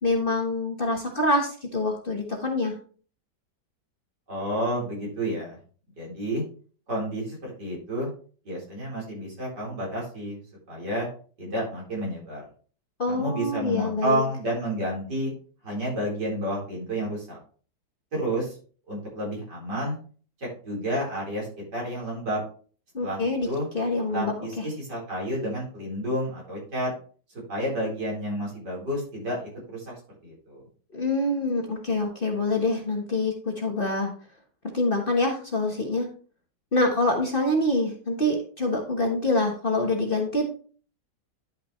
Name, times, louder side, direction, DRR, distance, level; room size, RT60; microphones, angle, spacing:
voice 1, 0.0-2.7 13.0-14.2 22.9-23.5 23.7-24.6 30.9-34.1 34.7-36.1 36.7-40.4, left 2 dB, 35° left, 1 dB, 1.3 m, -25 dB
voice 2, 4.3-5.6 6.0-6.4 6.9-8.1 8.4-10.4 10.7-11.1 11.4-12.4 13.1-15.3 15.6-17.4 18.1-18.6 18.9-20.0 20.4-22.4 23.0-23.7 24.1-26.9 27.5-29.9 30.2-30.6, equal, 70° right, -4 dB, 4.8 m, -30 dB
10.5 x 5.9 x 3.1 m, 0.41 s
omnidirectional pair, 1.9 m